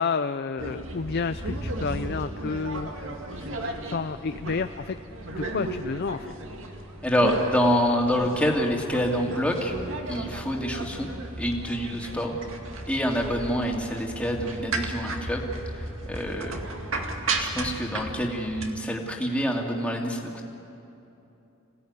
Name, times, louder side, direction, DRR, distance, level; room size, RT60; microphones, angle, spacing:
voice 1, 0.0-5.0 5.3-6.3, left 4 dB, 50° left, 10 dB, 0.5 m, -31 dB
sound 1, 0.6-18.7, right 2 dB, 65° right, 2.2 m, -35 dB
voice 2, 7.0-9.7 10.1-11.1 11.4-12.4 12.9-15.5 15.7-16.6 17.4-20.4, equal, 5° left, -1 dB, 2.6 m, -26 dB
26.5 x 17.5 x 9.6 m, 2.9 s
head